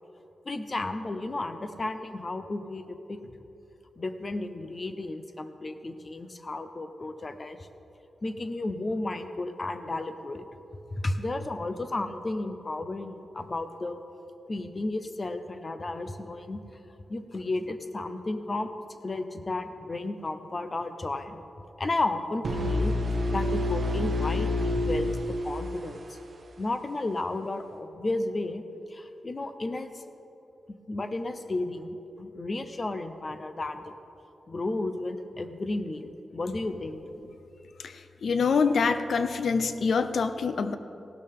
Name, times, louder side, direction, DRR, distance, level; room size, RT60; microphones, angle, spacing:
voice 1, 0.4-3.2 4.0-7.6 8.2-10.5 11.0-14.0 14.5-16.6 17.1-18.7 19.0-21.4 21.8-22.9 23.3-26.2 26.6-28.6 28.9-30.0 30.7-33.9 34.5-37.0, left 2 dB, 30° left, 9 dB, 0.6 m, -33 dB
sound 1, 22.4-26.3, left 1 dB, 45° right, 1.2 m, -28 dB
voice 2, 37.8-40.8, left 5 dB, 65° left, 10 dB, 0.6 m, -26 dB
16.0 x 12.0 x 3.7 m, 2.8 s
wide cardioid pair, 170°, 0 cm